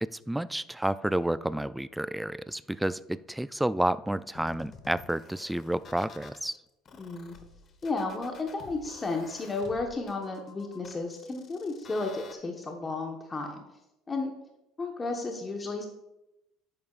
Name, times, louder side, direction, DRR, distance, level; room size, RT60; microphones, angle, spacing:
voice 1, 0.0-6.6, right 1 dB, 5° right, 17 dB, 0.3 m, -30 dB
sound 1, 4.3-6.4 6.8-12.3, left 6 dB, 45° left, 1.1 m, -51 dB
voice 2, 7.0-7.3 7.8-13.6 14.1-14.3 14.8-15.8, left 3 dB, 25° left, 2 dB, 1.1 m, -33 dB
10.5 x 8.8 x 2.4 m, 0.92 s
supercardioid pair, 90°, 0 cm